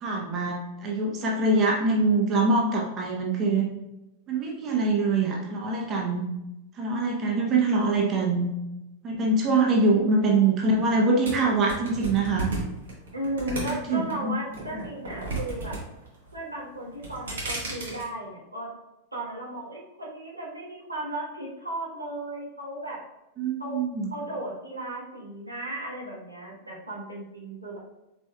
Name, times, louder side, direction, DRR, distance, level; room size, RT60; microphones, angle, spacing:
voice 1, 0.0-3.7 4.3-6.3 6.8-8.5 9.0-12.5 13.6-14.3 23.4-24.1, right 3 dB, 30° right, -1 dB, 0.7 m, -24 dB
voice 2, 7.8-8.4 9.9-10.0 13.1-15.8 16.3-18.7 19.1-23.0 23.6-23.8 24.1-27.8, right 1 dB, 85° right, -5 dB, 1.3 m, -35 dB
sound 1, 11.2-14.1 14.5-15.8 16.1-16.5 16.9-18.0, right 3 dB, 65° right, 1.4 m, -33 dB
4.3 x 4.3 x 2.3 m, 0.93 s
figure-of-eight pair, 90°, 0 cm